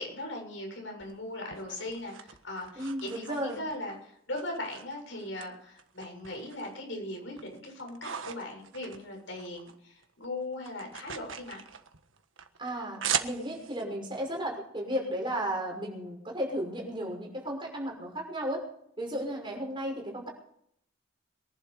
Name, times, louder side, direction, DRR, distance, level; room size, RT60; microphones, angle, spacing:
voice 1, 0.0-11.6, left 1 dB, 70° left, 1 dB, 7.3 m, -39 dB
sound 1, 1.0-3.9 4.3-5.5 5.8-6.8 7.2-9.8 10.0-13.8, right 8 dB, 80° right, 1.5 m, -39 dB
voice 2, 2.8-3.6 12.6-18.6 19.0-20.3, equal, 25° right, 0 dB, 5.9 m, -34 dB
23.0 x 11.5 x 5.1 m, 0.69 s
head